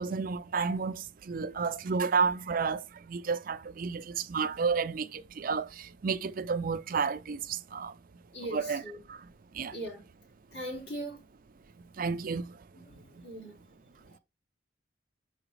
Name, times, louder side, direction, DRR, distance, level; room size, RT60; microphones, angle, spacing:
voice 1, 0.0-2.8 3.1-7.9 8.5-8.8 9.1-9.2 9.5-9.7 12.0-12.5, right 5 dB, 50° right, 0.5 m, -31 dB
voice 2, 8.3-9.0 9.7-10.0 10.5-11.2 12.8-13.6, right 1 dB, 65° left, 2.5 m, -40 dB
6.5 x 4.9 x 3.1 m
head